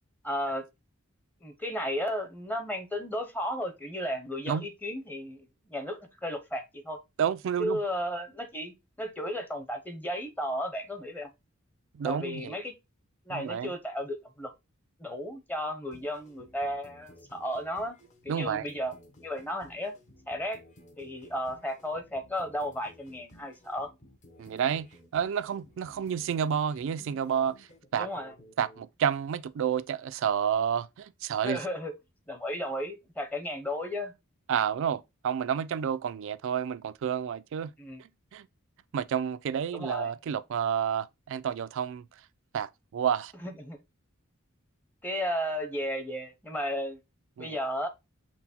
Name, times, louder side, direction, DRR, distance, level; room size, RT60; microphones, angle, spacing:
voice 1, 0.2-0.6 1.4-7.0 7.6-11.3 12.0-12.8 13.2-14.5 15.0-18.0 18.2-18.9 19.2-19.9 20.3-20.6 21.0-23.9 28.0-28.3 31.4-31.9 32.3-34.1 37.8-38.0 39.7-40.1 43.4-43.8 45.0-47.0 47.4-47.9, equal, 10° left, 0.7 m, -34 dB
voice 2, 7.2-7.8 11.9-12.6 13.3-13.7 18.3-18.7 24.4-27.7 27.9-28.1 28.6-31.6 34.5-37.7 38.0-38.5 38.9-42.1 42.5-43.3 47.4-47.5, right 8 dB, 65° right, 0.3 m, -30 dB
sound 1, 15.9-28.8, equal, 35° left, 0.9 m, -56 dB
5.8 x 2.1 x 4.2 m
head